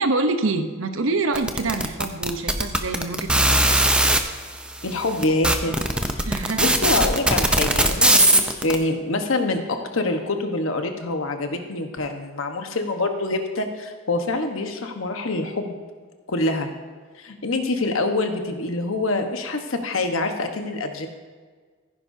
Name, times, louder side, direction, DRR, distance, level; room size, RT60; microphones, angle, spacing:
voice 1, 0.0-3.6 6.3-6.7, right 3 dB, 70° right, 8 dB, 0.9 m, -25 dB
sound 1, 1.4-4.2 4.9-5.0 5.2-8.7, right 1 dB, 5° right, 0.6 m, -18 dB
voice 2, 4.8-5.7 6.0-6.3 6.6-15.8 16.3-16.7 17.2-21.1, left 2 dB, 70° left, 5 dB, 1.2 m, -25 dB
15.0 x 10.0 x 2.7 m, 1.5 s
head